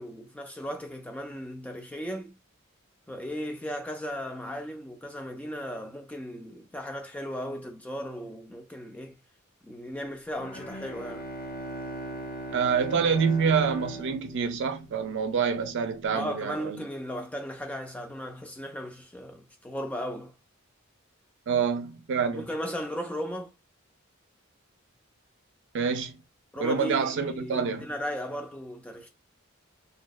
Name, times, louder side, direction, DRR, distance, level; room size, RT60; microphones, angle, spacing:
voice 1, 0.0-2.4 3.1-9.2 9.6-11.3 16.1-20.3 22.3-23.5 26.5-29.1, equal, 5° left, 0.3 m, -36 dB
Bowed string instrument, 10.4-15.3, right 1 dB, 45° left, 0.7 m, -39 dB
voice 2, 12.5-16.8 21.5-22.5 25.7-26.2 26.6-27.8, right 6 dB, 60° right, 0.4 m, -27 dB
2.6 x 2.1 x 2.2 m
head